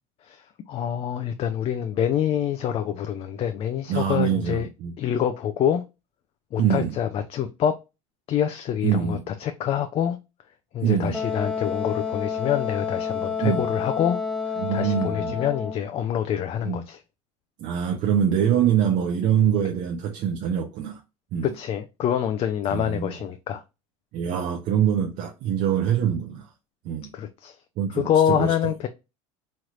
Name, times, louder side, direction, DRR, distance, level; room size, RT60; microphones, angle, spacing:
voice 1, 0.7-4.7 5.0-5.8 6.5-7.8 8.3-10.2 10.7-14.2 14.4-17.0 21.4-23.6 27.1-27.5 27.9-28.9, left 9 dB, 35° left, 0.4 m, -26 dB
voice 2, 3.9-4.9 6.6-7.0 8.8-9.2 10.8-11.2 13.4-13.6 14.6-15.4 16.6-16.8 17.6-21.0 21.3-21.5 22.7-23.1 24.1-26.5 26.8-27.1 27.8-28.5, right 9 dB, 55° right, 0.6 m, -24 dB
Wind instrument woodwind instrument, 11.1-15.8, left 6 dB, 5° left, 0.7 m, -29 dB
3.1 x 2.9 x 2.4 m
supercardioid pair, 105°, 16 cm